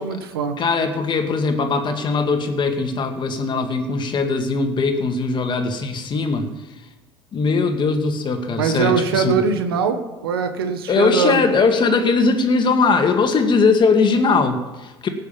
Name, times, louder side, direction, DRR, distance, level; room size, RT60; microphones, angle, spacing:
voice 1, 0.0-0.6 8.6-11.4, right 5 dB, 90° right, 8 dB, 1.4 m, -22 dB
voice 2, 0.6-6.5 7.3-9.4 10.9-15.1, left 4 dB, 40° left, 5 dB, 2.1 m, -20 dB
17.5 x 6.5 x 7.4 m, 1.1 s
hypercardioid pair, 75°, 12 cm